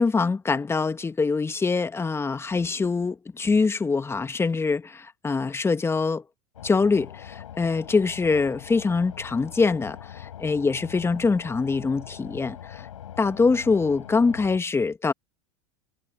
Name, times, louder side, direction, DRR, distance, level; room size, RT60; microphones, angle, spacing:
voice 1, 0.0-6.2 6.6-12.9 13.2-15.1, left 4 dB, 15° left, 1.6 m, -24 dB
sound 1, 6.6-14.6, left 10 dB, 85° left, 4.8 m, -42 dB
hypercardioid pair, 100°, 17 cm